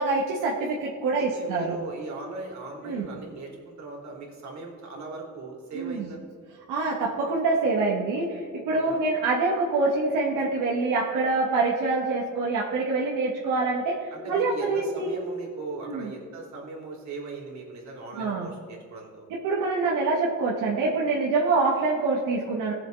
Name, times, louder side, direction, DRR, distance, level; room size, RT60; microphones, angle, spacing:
voice 1, 0.0-1.7 2.8-3.1 5.7-6.1 6.7-15.1 15.8-16.1 18.1-18.5 19.3-22.7, right 3 dB, 90° right, -4 dB, 1.7 m, -25 dB
voice 2, 1.2-6.2 8.7-9.0 14.1-19.3, right 3 dB, 60° right, -1 dB, 3.3 m, -39 dB
18.0 x 7.4 x 4.0 m, 2.2 s
cardioid pair, 125°, 31 cm